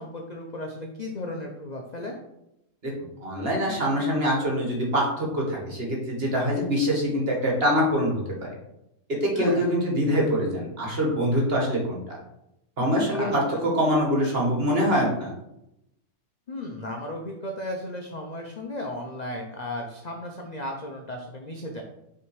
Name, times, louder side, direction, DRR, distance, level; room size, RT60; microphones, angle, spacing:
voice 1, 0.0-2.2 9.4-9.6 13.1-13.6 16.5-21.8, left 1 dB, 50° left, 1 dB, 0.5 m, -35 dB
voice 2, 3.2-8.5 9.2-12.0 12.8-15.3, equal, 40° right, -2 dB, 1.7 m, -24 dB
5.9 x 3.5 x 4.7 m, 0.84 s
omnidirectional pair, 1.7 m